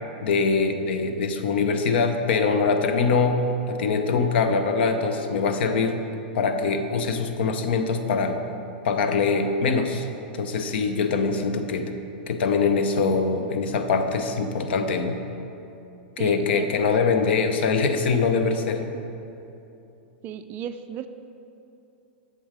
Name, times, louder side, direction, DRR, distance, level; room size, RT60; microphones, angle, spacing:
voice 1, 0.2-3.4 3.7-6.0 6.3-8.4 8.8-10.1 10.4-11.9 12.3-15.2 16.2-18.8, left 4 dB, 70° left, 7 dB, 0.8 m, -23 dB
voice 2, 16.2-16.7 17.3-17.4 18.9-19.0 20.2-21.1, right 9 dB, 35° right, 9 dB, 0.3 m, -35 dB
7.2 x 7.0 x 4.8 m, 2.8 s
hypercardioid pair, 130°, 6 cm